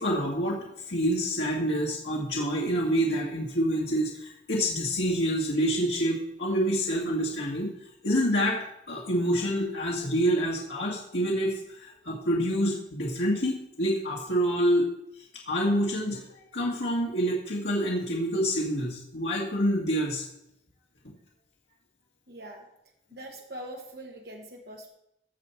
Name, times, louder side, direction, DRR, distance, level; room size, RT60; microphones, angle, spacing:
voice 1, 0.0-7.7 8.0-8.6 8.9-14.9 15.2-20.3, equal, 85° left, -4 dB, 1.9 m, -27 dB
voice 2, 22.3-22.7 23.1-24.9, right 1 dB, 60° right, 0 dB, 1.4 m, -42 dB
14.5 x 7.0 x 4.5 m, 0.80 s
head